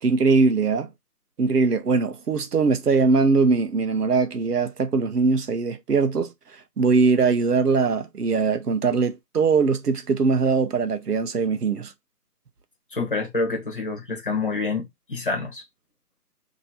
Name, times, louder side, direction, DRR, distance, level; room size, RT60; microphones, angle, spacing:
voice 1, 0.0-0.9 1.4-6.3 6.8-11.9, right 4 dB, 75° right, 0.9 m, -21 dB
voice 2, 12.9-15.6, left 3 dB, 35° left, 1.1 m, -27 dB
2.9 x 2.8 x 4.1 m
figure-of-eight pair, 165°, 46 cm